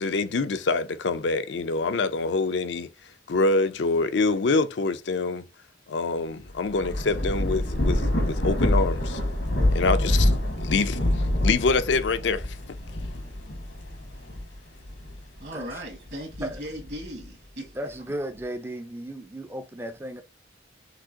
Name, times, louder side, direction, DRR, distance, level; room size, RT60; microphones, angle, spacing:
voice 1, 0.0-2.9 3.3-5.5 5.9-9.2 9.7-10.3 10.6-12.4, left 3 dB, 70° left, 0.5 m, -25 dB
Thunder / Rain, 6.5-15.4 15.9-17.2, left 1 dB, 90° left, 1.6 m, -26 dB
voice 2, 15.4-17.8, equal, 60° right, 1.6 m, -37 dB
voice 3, 17.7-20.2, right 1 dB, 10° right, 0.4 m, -35 dB
6.0 x 2.8 x 2.8 m
head